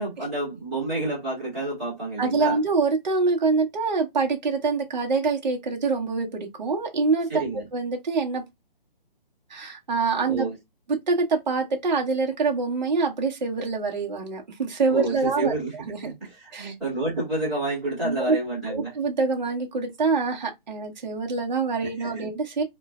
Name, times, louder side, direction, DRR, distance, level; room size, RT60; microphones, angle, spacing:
voice 1, 0.0-2.6 7.3-7.6 10.3-10.6 14.9-15.7 16.0-18.9 22.0-22.3, right 1 dB, ahead, 1.0 m, -29 dB
voice 2, 2.2-7.4 7.7-8.4 9.5-10.5 10.9-16.1 16.5-16.7 18.0-18.4 18.7-22.6, right 4 dB, 50° right, 0.8 m, -25 dB
3.1 x 2.1 x 2.2 m
hypercardioid pair, 175°, 29 cm